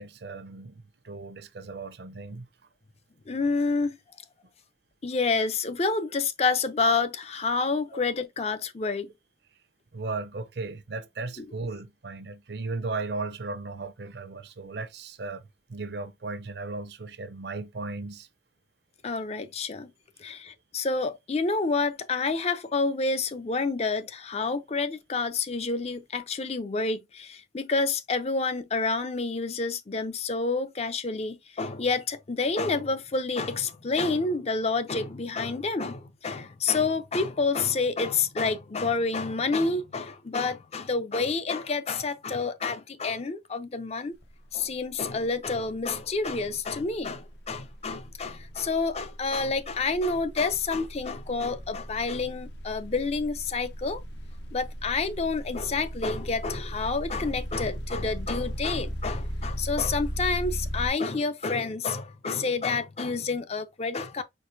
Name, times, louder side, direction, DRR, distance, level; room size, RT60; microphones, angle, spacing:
voice 1, 0.0-2.5 9.9-15.4 15.7-18.3, right 3 dB, 65° right, 0.6 m, -36 dB
voice 2, 3.3-4.0 5.0-9.1 11.4-11.5 19.0-19.9 20.2-44.1 44.5-54.0 54.5-64.2, left 4 dB, 35° left, 0.5 m, -28 dB
sound 1, 44.2-44.5 44.8-60.9, equal, 70° left, 0.9 m, -37 dB
4.6 x 4.1 x 2.6 m
head